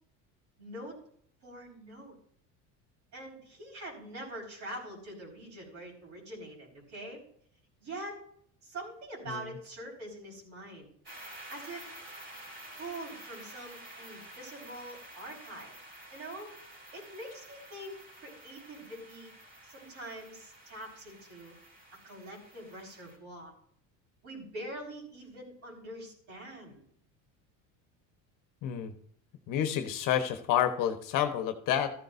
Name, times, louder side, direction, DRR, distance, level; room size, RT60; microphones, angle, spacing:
voice 1, 0.6-1.0 1.4-2.1 3.1-7.2 7.8-8.1 8.6-10.9 11.5-11.9 12.8-15.8 16.1-16.5 16.9-19.3 19.6-21.5 22.0-23.5 24.2-26.8, right 1 dB, 50° right, -1 dB, 5.2 m, -44 dB
sound 1, 11.0-23.2, right 1 dB, 30° right, 4.2 m, -50 dB
voice 2, 28.6-28.9 29.5-31.9, left 10 dB, 60° left, 8 dB, 1.3 m, -29 dB
14.0 x 10.5 x 2.7 m, 0.62 s
cardioid pair, 125°, 36 cm